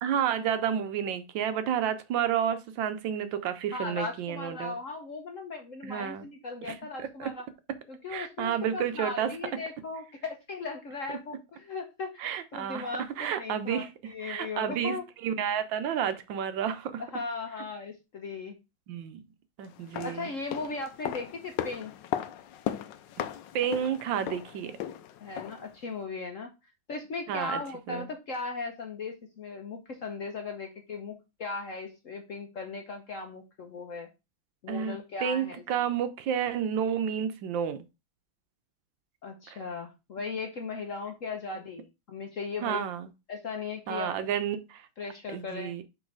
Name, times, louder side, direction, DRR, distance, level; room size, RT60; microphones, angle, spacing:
voice 1, 0.0-4.7 5.8-6.2 6.6-7.3 8.1-9.4 12.2-12.9 13.2-13.9 14.2-14.9 15.2-17.0 18.9-19.2 19.6-20.3 23.5-24.8 27.3-27.6 27.9-28.1 34.7-37.8 39.5-39.6 42.6-43.1 43.9-44.9 45.3-45.8, right 8 dB, 70° right, 1.3 m, -30 dB
voice 2, 3.7-7.5 7.9-12.2 12.5-15.0 17.0-18.6 20.0-21.9 25.2-26.5 26.9-34.1 34.6-35.6 39.2-42.8 43.3-44.3 45.0-45.7, left 4 dB, 55° left, 0.9 m, -37 dB
sound 1, 19.7-25.7 26.0-26.1, left 10 dB, 75° left, 1.2 m, -37 dB
6.3 x 3.9 x 4.7 m
omnidirectional pair, 2.2 m